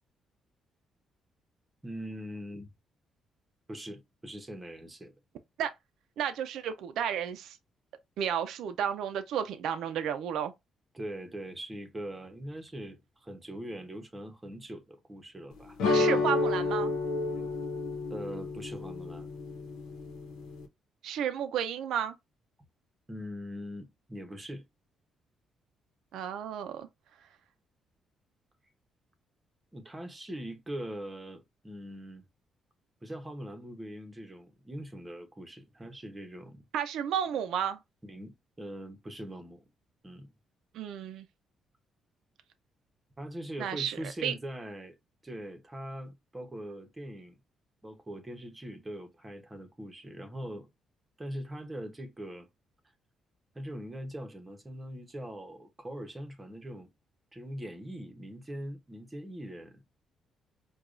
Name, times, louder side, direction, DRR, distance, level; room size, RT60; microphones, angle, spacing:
voice 1, 1.8-2.7 3.7-5.1 10.9-16.2 18.1-19.3 23.1-24.6 29.7-32.2 33.0-36.6 38.0-39.6 40.0-40.3 43.2-44.9 45.2-47.4 47.8-50.7 51.2-52.5 53.5-56.9 57.3-59.9, equal, 15° right, 1.0 m, -42 dB
voice 2, 6.2-7.6 8.2-10.5 15.9-16.9 21.0-22.2 26.1-26.9 36.7-37.8 40.7-41.3 43.6-44.3, right 9 dB, 80° right, 0.4 m, -32 dB
sound 1, 15.8-20.7, left 3 dB, 85° left, 0.9 m, -30 dB
4.7 x 2.3 x 2.5 m
cardioid pair, 90°, 0 cm